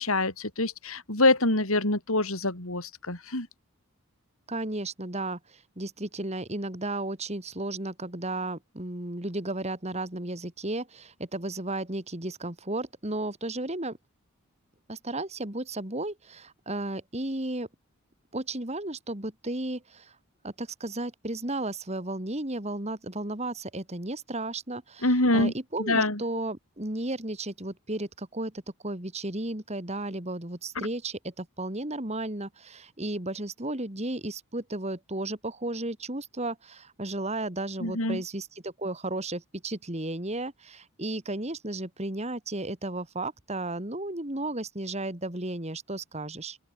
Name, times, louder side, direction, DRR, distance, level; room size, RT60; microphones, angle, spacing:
voice 1, 0.0-3.5 25.0-25.5 25.8-26.2 37.8-38.2, left 2 dB, 70° left, 5.8 m, -25 dB
voice 2, 4.5-14.0 14.9-17.7 18.3-20.1 20.4-25.1 25.3-28.5 28.8-46.6, right 2 dB, 30° right, 2.7 m, -34 dB
open air
head